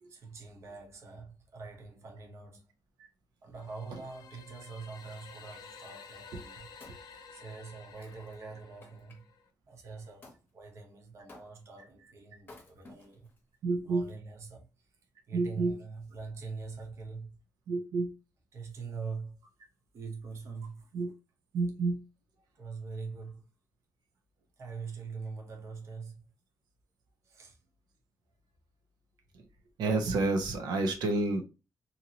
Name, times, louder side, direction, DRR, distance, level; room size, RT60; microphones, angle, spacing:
voice 1, 0.1-2.7 3.4-6.7 7.3-9.2 9.7-13.3 13.8-15.0 15.3-17.4 18.5-19.4 19.9-20.9 22.5-23.5 24.6-26.3 27.2-27.6, right 4 dB, 45° right, 0.8 m, -44 dB
sound 1, 3.6-9.5, left 5 dB, 80° left, 0.5 m, -52 dB
Wood, 6.3-9.2 10.2-10.4 11.3-11.8 12.4-13.4 14.0-14.1, left 2 dB, 30° left, 0.9 m, -56 dB
voice 2, 13.6-14.1 15.3-15.8 17.7-18.1 20.9-21.1 21.5-22.0 29.3-29.4 29.8-31.4, right 3 dB, 90° right, 0.7 m, -29 dB
2.8 x 2.6 x 2.7 m
wide cardioid pair, 175°, 7 cm